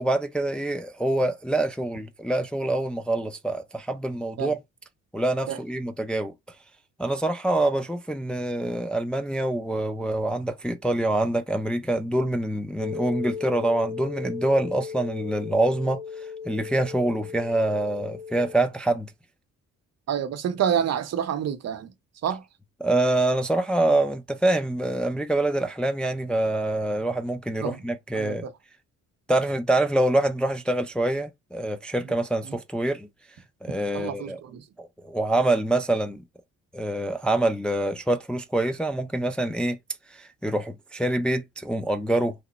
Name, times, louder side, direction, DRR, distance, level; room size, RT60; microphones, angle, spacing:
voice 1, 0.0-4.6 5.1-6.3 7.0-16.0 16.5-19.1 22.8-28.5 29.3-33.1 33.6-34.4 34.8-36.2 36.7-39.8 40.1-42.3, right 1 dB, 5° left, 0.3 m, -25 dB
sound 1, 12.8-18.5, left 6 dB, 85° left, 0.5 m, -36 dB
voice 2, 20.1-21.9 22.2-22.4 27.6-27.8 28.1-28.5 32.4-32.6 33.9-34.6, right 9 dB, 60° right, 0.7 m, -28 dB
3.0 x 2.0 x 3.9 m
cardioid pair, 90°, 30 cm